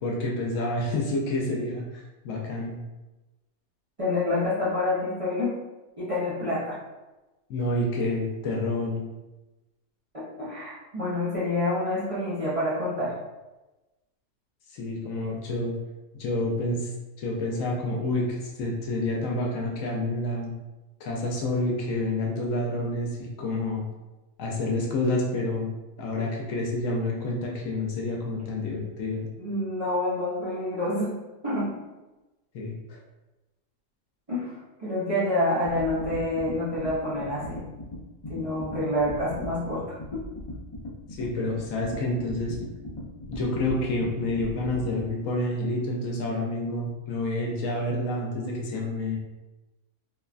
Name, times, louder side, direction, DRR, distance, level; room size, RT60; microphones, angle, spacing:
voice 1, 0.0-2.8 7.5-9.0 14.7-15.8 16.1-16.9 17.2-20.5 21.0-23.8 24.4-29.3 32.5-33.0 41.2-42.6 43.3-49.2, left 2 dB, 70° left, -1 dB, 0.9 m, -28 dB
voice 2, 4.0-5.5 6.0-6.8 10.1-13.1 29.4-31.1 31.4-31.8 34.3-34.5 34.8-37.6 38.3-39.8 40.1-40.2, left 1 dB, 35° right, -10 dB, 0.6 m, -27 dB
sound 1, 35.6-45.1, left 1 dB, 45° left, 0.3 m, -38 dB
3.0 x 2.2 x 2.4 m, 1.1 s
omnidirectional pair, 1.5 m